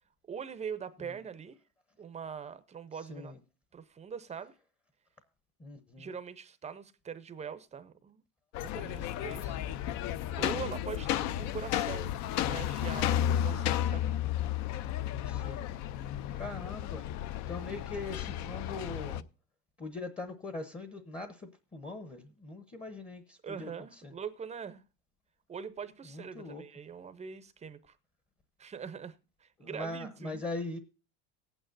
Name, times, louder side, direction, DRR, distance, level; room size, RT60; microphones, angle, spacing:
voice 1, 0.3-1.6 2.0-3.3 3.7-4.5 6.0-8.2 8.6-14.1 23.4-24.8 25.5-28.0 28.6-29.1 29.4-30.4, right 7 dB, 15° right, 0.6 m, -43 dB
voice 2, 5.6-6.1 15.2-15.7 16.4-17.1 17.5-19.2 19.8-23.7 24.0-24.1 26.1-26.6 29.6-30.8, left 2 dB, 15° left, 0.8 m, -41 dB
sound 1, 8.5-19.2, left 11 dB, 45° left, 0.5 m, -33 dB
18.0 x 9.0 x 2.5 m
cardioid pair, 145°, 39 cm